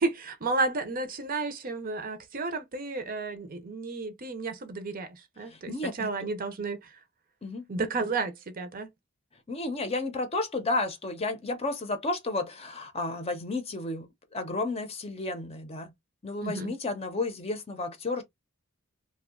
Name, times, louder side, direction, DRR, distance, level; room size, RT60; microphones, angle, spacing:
voice 1, 0.0-5.1 5.4-5.7 6.0-6.8 7.7-8.9 16.4-16.7, right 3 dB, 45° right, 0.6 m, -32 dB
voice 2, 5.5-6.1 7.4-7.7 9.5-15.9 16.2-18.2, left 2 dB, 30° left, 0.7 m, -32 dB
2.7 x 2.3 x 3.6 m
head